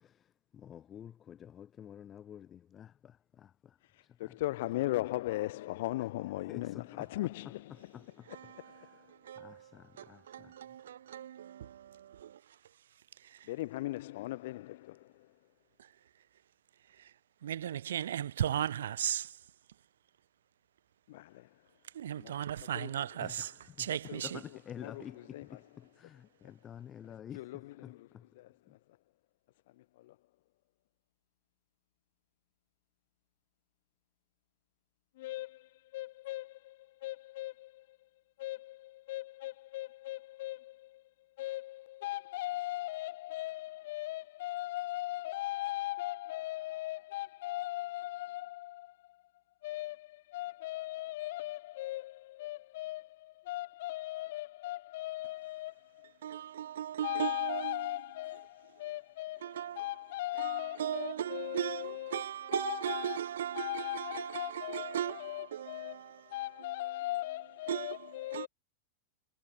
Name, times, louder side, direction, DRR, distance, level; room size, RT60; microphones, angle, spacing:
voice 1, 0.5-3.1 3.4-3.5 6.5-6.8 9.4-10.5 23.2-23.3 24.2-25.4 26.0-27.4, left 9 dB, 25° left, 1.4 m, -48 dB
voice 2, 4.2-9.0 13.4-15.3 21.1-21.5 22.2-22.3 22.7-22.9 23.9-25.9 27.0-28.8 29.7-30.2 35.2-38.1 38.4-41.0 41.4-49.2 49.6-56.1 57.0-62.2 62.5-63.2 63.5-68.5, left 17 dB, 55° left, 6.0 m, -39 dB
voice 3, 8.2-12.6 13.2-13.5 15.8-15.9 16.9-17.1 17.4-19.4 21.9-24.5 56.2-57.9 59.4-59.9 60.4-66.3 66.6-66.7 67.7-68.5, right 10 dB, 60° right, 4.0 m, -38 dB
figure-of-eight pair, 90°, 0 cm